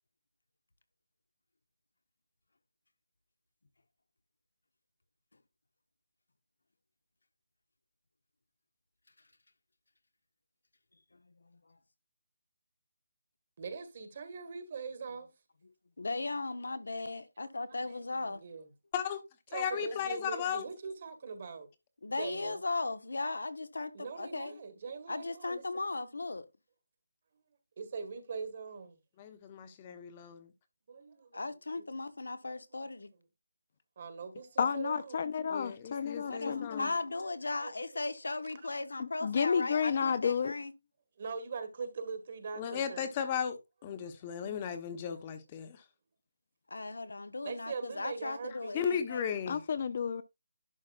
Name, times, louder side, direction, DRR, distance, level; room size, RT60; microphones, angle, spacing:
voice 1, 13.6-15.3 17.9-18.7 19.5-21.7 22.1-22.6 23.9-25.6 27.8-29.0 30.9-31.9 32.4-33.2 34.0-35.2 36.1-38.0 38.6-38.7 41.2-43.1 47.4-48.8 49.0-49.2, right 5 dB, 45° right, 1.8 m, -42 dB
voice 2, 16.0-18.4 22.0-24.5 25.1-26.5 31.3-33.1 36.3-40.7 46.7-49.2, left 3 dB, 80° left, 1.1 m, -37 dB
voice 3, 19.5-20.6 29.2-30.5 35.5-36.9 42.6-45.8 48.7-49.6, left 8 dB, 25° left, 1.1 m, -36 dB
voice 4, 34.6-36.9 39.0-40.5 49.5-50.2, left 6 dB, 45° left, 0.6 m, -31 dB
11.0 x 5.6 x 2.5 m
figure-of-eight pair, 165°, 0 cm